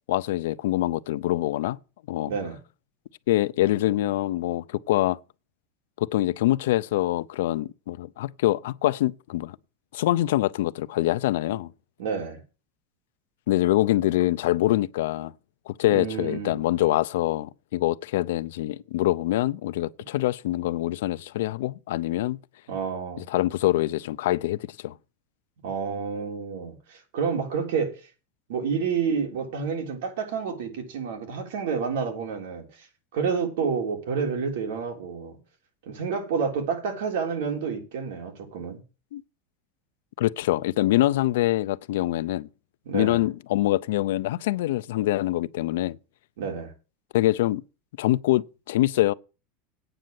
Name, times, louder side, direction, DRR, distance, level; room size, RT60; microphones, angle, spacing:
voice 1, 0.1-1.8 2.1-2.3 3.3-5.2 6.0-9.6 9.9-11.7 13.5-15.3 15.7-22.4 23.3-24.9 39.1-39.2 40.2-42.5 42.9-46.0 47.1-47.6 48.0-49.1, left 15 dB, 75° left, 0.4 m, -24 dB
voice 2, 12.0-12.4 15.9-16.6 22.7-23.2 25.6-27.9 28.5-32.7 33.1-35.4 35.9-38.8 42.9-43.2 46.4-46.7, right 6 dB, 70° right, 3.5 m, -29 dB
9.0 x 6.5 x 7.7 m
supercardioid pair, 175°, 0 cm